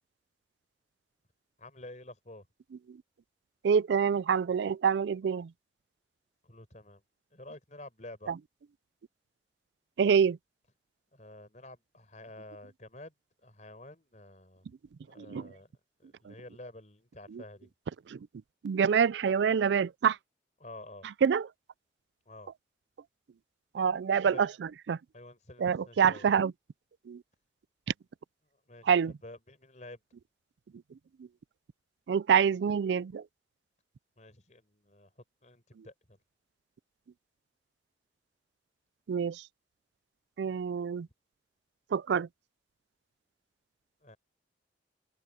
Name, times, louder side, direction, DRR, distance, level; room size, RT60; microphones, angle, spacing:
voice 1, 1.6-2.4 6.4-7.0 7.3-8.4 11.1-13.1 13.4-14.7 15.1-15.7 16.0-17.7 20.6-21.1 22.3-22.5 24.3-24.5 25.1-26.3 28.7-28.9 29.2-30.0 34.2-35.1 35.4-36.2 44.0-44.2, left 1 dB, 40° left, 4.7 m, -49 dB
voice 2, 3.6-5.5 8.3-8.4 10.0-10.4 15.2-15.5 16.3-16.4 17.3-17.4 18.1-18.2 18.6-20.2 21.2-21.5 23.7-25.0 25.6-26.5 27.1-27.2 28.9-29.1 32.1-33.2 39.1-39.4 40.4-41.1 41.9-42.3, right 7 dB, 75° right, 0.4 m, -26 dB
open air
head